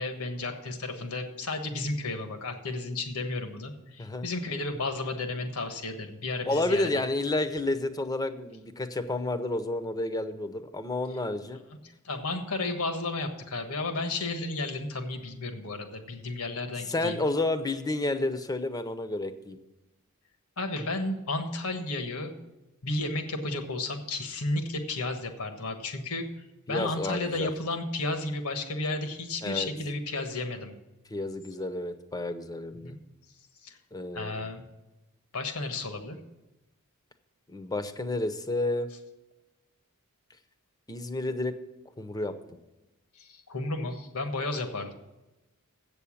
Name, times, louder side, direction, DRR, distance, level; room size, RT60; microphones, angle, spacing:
voice 1, 0.0-6.9 12.0-17.2 20.6-22.3 22.8-26.3 26.7-30.7 32.8-33.0 33.6-33.8 34.1-34.6 35.3-36.2 43.1-44.9, left 2 dB, 80° left, 6 dB, 1.4 m, -33 dB
voice 2, 6.5-11.6 16.8-19.6 26.7-27.5 29.4-29.7 31.1-32.9 33.9-34.5 37.5-38.9 40.9-41.5 42.0-42.6, left 2 dB, 15° left, 10 dB, 0.7 m, -30 dB
8.2 x 6.9 x 8.4 m, 1.0 s
head